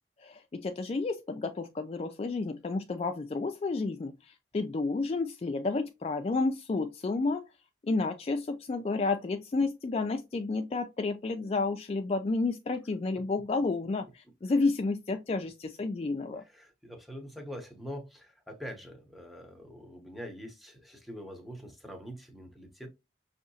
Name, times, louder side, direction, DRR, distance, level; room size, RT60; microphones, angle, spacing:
voice 1, 0.2-7.5 7.8-16.4, left 3 dB, 35° left, 0.3 m, -31 dB
voice 2, 16.4-22.9, equal, ahead, 0.9 m, -44 dB
5.7 x 2.7 x 2.7 m
head